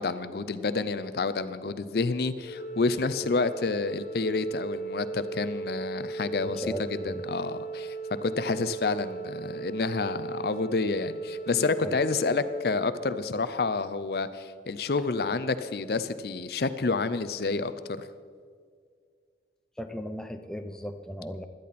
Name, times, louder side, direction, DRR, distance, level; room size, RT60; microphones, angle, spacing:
voice 1, 0.0-6.6 6.9-7.9 8.2-18.1, left 4 dB, 60° left, 13 dB, 0.5 m, -29 dB
Organ, 2.5-13.5, right 4 dB, 40° left, 1.3 m, -37 dB
voice 2, 6.4-7.3 11.8-12.0 19.8-21.5, equal, 5° left, 6 dB, 0.6 m, -37 dB
17.0 x 12.0 x 4.2 m, 2.1 s
head